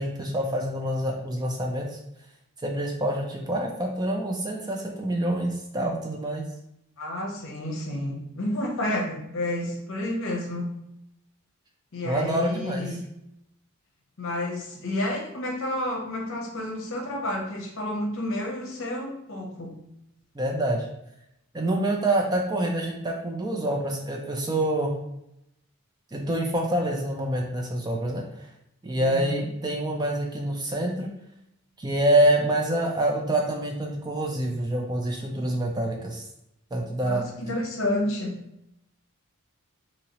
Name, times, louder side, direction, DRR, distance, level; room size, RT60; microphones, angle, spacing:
voice 1, 0.0-2.0 2.6-6.4 12.0-12.9 20.3-20.9 21.5-24.9 26.1-28.5 28.8-31.1 31.8-36.3 36.7-37.2, right 1 dB, 20° right, 0 dB, 0.3 m, -26 dB
voice 2, 7.0-10.7 11.9-13.1 14.2-19.8 29.0-29.5 37.0-38.4, left 1 dB, 60° left, 0 dB, 0.7 m, -30 dB
2.9 x 2.8 x 2.9 m, 0.81 s
head